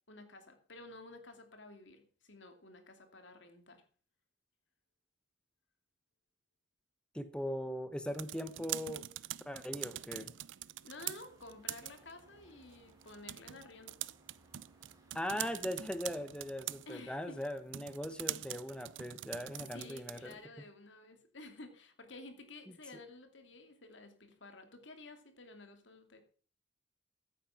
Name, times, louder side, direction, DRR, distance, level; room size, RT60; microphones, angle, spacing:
voice 1, 0.1-3.9 10.8-14.0 16.9-17.4 19.7-26.2, left 2 dB, 70° left, 6 dB, 2.7 m, -52 dB
voice 2, 7.1-9.0 9.5-10.3 15.1-20.3, equal, 5° left, 10 dB, 0.9 m, -40 dB
sound 1, 7.9-20.4, right 14 dB, 80° right, 0.5 m, -45 dB
sound 2, 10.9-16.8, right 1 dB, 20° right, 4.0 m, -67 dB
15.0 x 9.1 x 5.8 m, 0.41 s
head